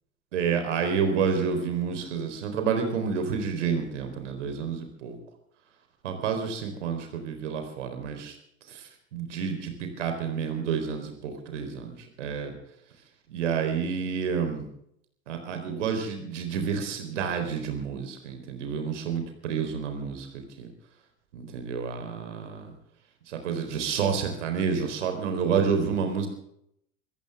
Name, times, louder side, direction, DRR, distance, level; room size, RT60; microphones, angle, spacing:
voice 1, 0.3-5.2 6.0-8.4 8.7-12.5 13.3-14.7 15.3-20.3 20.6-20.7 21.3-22.7 23.3-26.3, right 6 dB, 65° right, 5 dB, 4.1 m, -29 dB
25.5 x 15.0 x 3.6 m, 0.73 s
figure-of-eight pair, 80°, 39 cm